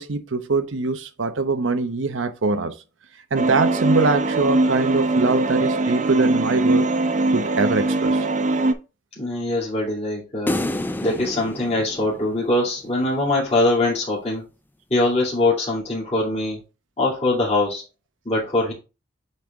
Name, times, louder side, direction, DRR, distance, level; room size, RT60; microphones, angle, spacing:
voice 1, 0.0-2.7 3.3-6.9 7.3-8.2, right 3 dB, 90° right, 0.8 m, -23 dB
sound 1, 3.4-8.7, right 2 dB, 40° right, 0.6 m, -21 dB
voice 2, 9.2-10.6 11.0-14.4 14.9-16.6 17.0-17.8 18.2-18.7, left 2 dB, 35° left, 2.4 m, -22 dB
sound 2, 10.5-12.9, left 1 dB, 10° left, 0.3 m, -29 dB
8.2 x 3.3 x 3.6 m
head